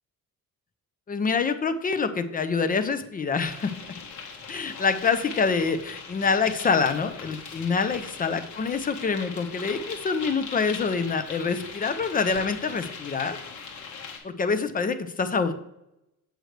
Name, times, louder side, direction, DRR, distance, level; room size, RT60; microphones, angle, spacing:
voice 1, 1.1-3.7 4.5-13.4 14.2-15.5, left 5 dB, 25° left, 9 dB, 0.5 m, -26 dB
sound 1, 3.4-14.2, left 5 dB, 55° left, 1.5 m, -40 dB
7.8 x 6.3 x 3.3 m, 0.85 s
cardioid pair, 155°, 34 cm